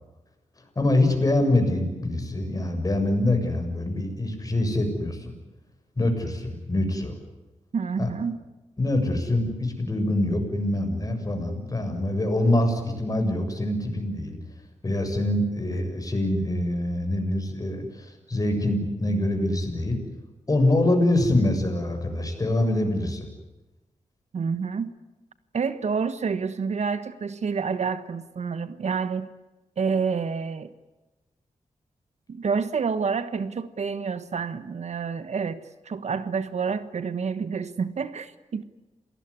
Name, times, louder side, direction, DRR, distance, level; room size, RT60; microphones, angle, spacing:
voice 1, 0.8-5.3 6.0-7.1 8.0-8.1 8.8-14.4 14.8-20.0 20.5-23.3, left 1 dB, 30° left, 5 dB, 7.1 m, -24 dB
voice 2, 7.7-8.4 24.3-24.9 25.5-29.3 29.8-30.7 32.3-38.6, right 5 dB, 60° right, 12 dB, 1.4 m, -28 dB
27.5 x 19.0 x 9.8 m, 1.1 s
cardioid pair, 85°, 13 cm